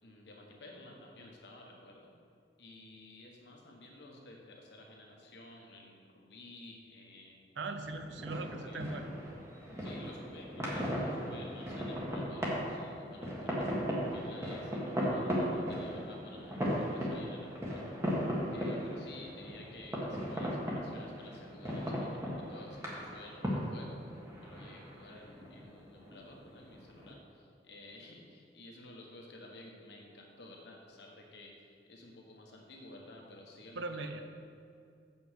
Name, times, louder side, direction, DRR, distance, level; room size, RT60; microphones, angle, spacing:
voice 1, 0.0-2.1 2.6-7.4 8.3-8.8 9.8-18.0 18.5-34.2, left 2 dB, 65° left, 0 dB, 1.4 m, -53 dB
voice 2, 7.6-9.0 18.8-19.0 33.7-34.2, right 2 dB, 85° right, 6 dB, 0.7 m, -39 dB
sound 1, 7.8-27.1, equal, 15° right, 1.4 m, -37 dB
7.8 x 5.6 x 6.4 m, 2.4 s
head